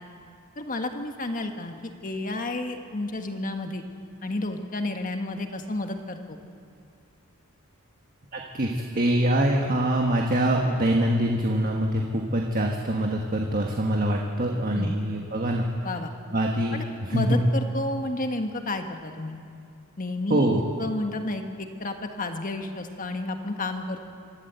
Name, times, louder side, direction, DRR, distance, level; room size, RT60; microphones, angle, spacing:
voice 1, 0.6-3.8 4.2-6.4 14.7-15.0 15.8-16.1 16.7-16.9 17.1-19.4 20.0-24.0, left 2 dB, 35° left, 5 dB, 1.5 m, -31 dB
voice 2, 8.3-15.9 16.3-17.5 20.3-20.6, right 1 dB, 40° right, 1 dB, 1.4 m, -24 dB
25.0 x 13.0 x 8.2 m, 2.4 s
head